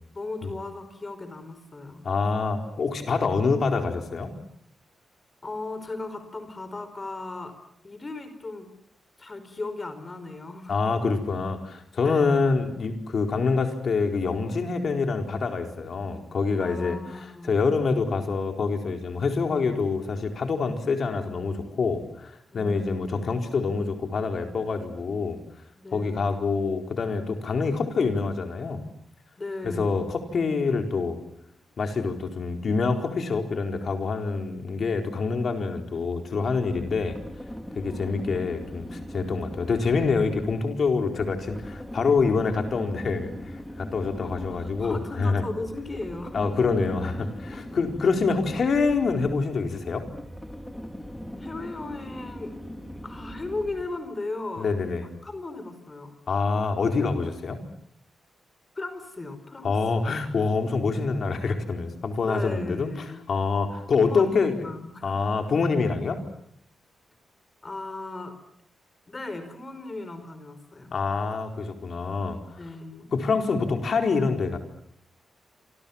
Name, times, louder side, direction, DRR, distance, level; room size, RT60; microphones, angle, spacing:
voice 1, 0.1-2.1 5.4-7.5 7.8-8.7 9.2-10.7 12.0-12.4 16.6-17.6 22.5-23.4 25.7-26.3 29.4-30.1 37.9-38.3 44.1-46.4 47.2-47.6 51.4-52.5 53.0-54.7 55.2-56.1 58.7-60.1 62.2-63.3 64.0-65.1 67.6-68.3 69.1-70.9 72.6-73.1, left 2 dB, 25° left, 10 dB, 4.8 m, -37 dB
voice 2, 2.0-4.3 10.7-25.4 25.9-28.8 29.6-31.2 31.8-37.2 37.7-45.4 46.3-50.0 54.6-55.0 56.3-57.6 59.6-64.7 65.0-66.2 70.9-72.4 73.1-74.6, left 4 dB, 50° left, 5 dB, 4.4 m, -26 dB
sound 1, 36.5-54.1, equal, 5° left, 2.8 m, -40 dB
29.0 x 26.5 x 7.3 m, 0.70 s
wide cardioid pair, 165°, 0 cm